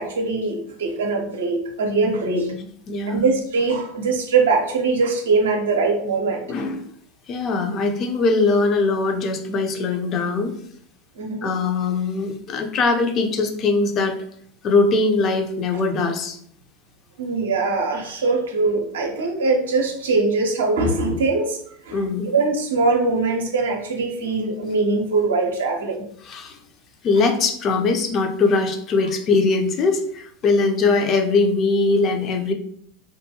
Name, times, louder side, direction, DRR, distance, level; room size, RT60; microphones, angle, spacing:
voice 1, 0.0-2.5 3.1-6.4 11.2-11.5 15.7-15.8 17.2-21.6 21.8-22.0 22.3-26.1, right 3 dB, 75° right, 3 dB, 0.5 m, -22 dB
voice 2, 2.0-3.3 6.5-6.8 7.3-10.6 11.4-14.2 14.6-16.4 21.9-22.3 26.3-26.6 27.0-32.5, left 3 dB, 40° left, 4 dB, 0.4 m, -21 dB
2.6 x 2.2 x 2.7 m, 0.65 s
figure-of-eight pair, 85°, 0 cm